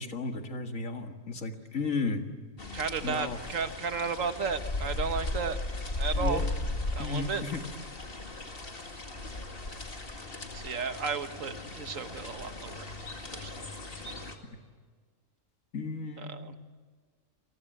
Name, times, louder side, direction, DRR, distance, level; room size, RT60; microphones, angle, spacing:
voice 1, 0.0-2.2 3.0-3.4 6.2-6.5 7.0-7.6 15.7-16.6, left 3 dB, 80° left, 5 dB, 2.2 m, -34 dB
sound 1, 2.6-14.4, left 2 dB, 45° left, 2.4 m, -37 dB
voice 2, 2.7-5.6 6.0-6.4 6.9-7.4 10.5-12.9 13.3-13.7 16.2-16.5, right 5 dB, 80° right, 9 dB, 1.7 m, -34 dB
29.0 x 21.0 x 9.2 m, 1.5 s
omnidirectional pair, 1.3 m